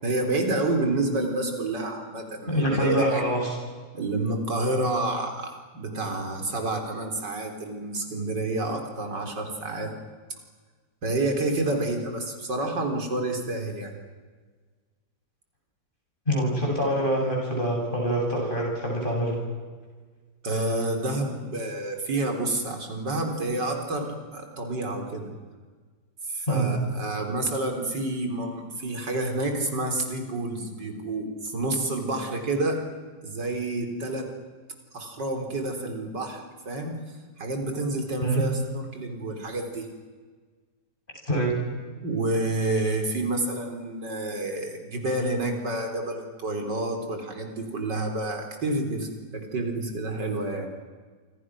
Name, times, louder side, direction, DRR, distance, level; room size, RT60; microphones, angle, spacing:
voice 1, 0.0-3.2 3.9-9.9 11.0-13.9 20.4-25.3 26.3-32.8 33.2-34.3 34.9-37.0 37.4-39.9 41.9-50.7, right 2 dB, 85° right, 4 dB, 4.3 m, -29 dB
voice 2, 2.5-3.5 16.3-19.4 26.5-26.7 38.2-38.4 41.3-41.5, right 1 dB, 30° left, -1 dB, 8.4 m, -25 dB
28.0 x 26.0 x 6.3 m, 1.5 s
omnidirectional pair, 1.8 m